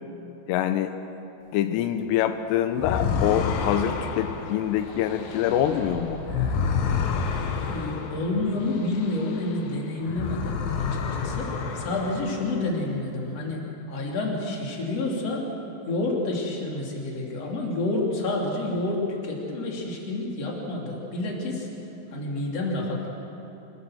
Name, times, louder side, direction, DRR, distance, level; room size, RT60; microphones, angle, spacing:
voice 1, 0.5-0.9 1.5-6.2, left 10 dB, 85° left, 9 dB, 2.9 m, -25 dB
sound 1, 2.7-9.7 10.0-12.7, left 5 dB, 65° left, 2.9 m, -29 dB
sound 2, 3.4-7.8, right 2 dB, 80° right, 9.2 m, -42 dB
voice 2, 7.7-13.6 13.9-15.5 15.9-21.7 22.1-23.1, left 2 dB, 40° left, -1 dB, 3.8 m, -29 dB
26.0 x 17.5 x 7.4 m, 2.9 s
omnidirectional pair, 4.8 m